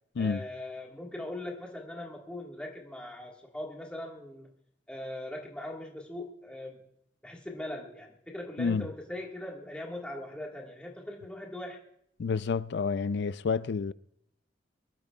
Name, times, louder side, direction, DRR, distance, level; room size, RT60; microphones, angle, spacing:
voice 1, 0.2-4.5 4.9-6.8 7.2-11.8, left 1 dB, 5° left, 1.6 m, -40 dB
voice 2, 12.2-13.9, left 5 dB, 65° left, 0.4 m, -29 dB
24.0 x 13.0 x 2.3 m
head